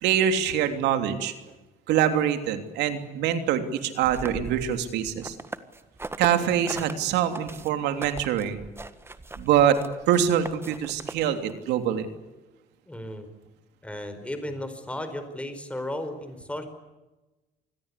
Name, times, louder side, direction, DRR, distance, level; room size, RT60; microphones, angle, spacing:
voice 1, 0.0-1.3 1.9-5.4 6.2-8.6 9.4-9.8 10.1-12.1, right 9 dB, 85° right, 7 dB, 3.1 m, -24 dB
sound 1, 4.0-6.9 7.3-11.5, right 2 dB, 15° right, 1.6 m, -39 dB
voice 2, 12.9-13.3 13.8-16.7, left 1 dB, 5° left, 8 dB, 4.7 m, -34 dB
27.5 x 21.0 x 8.4 m, 1.1 s
cardioid pair, 110°, 17 cm